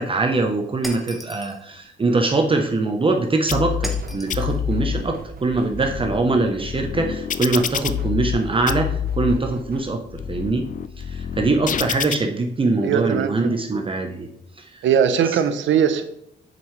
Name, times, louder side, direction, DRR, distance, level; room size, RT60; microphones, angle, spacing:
voice 1, 0.0-10.0 10.3-10.6 11.0-14.3 14.6-14.7 15.2-15.4, right 3 dB, 25° right, 3 dB, 1.0 m, -22 dB
Shatter, 0.8-1.6 3.8-4.6, equal, ahead, 1.2 m, -36 dB
sound 1, 3.5-4.0 4.3-5.0 5.6-8.4 8.7-9.4 10.0-12.2, left 9 dB, 40° left, 0.4 m, -27 dB
sound 2, 4.0-6.2 7.5-10.2, right 4 dB, 50° right, 1.1 m, -39 dB
voice 2, 12.8-13.6 14.8-16.0, right 8 dB, 70° right, 9 dB, 0.9 m, -20 dB
7.5 x 5.5 x 3.3 m, 0.74 s
cardioid pair, 90°, 20 cm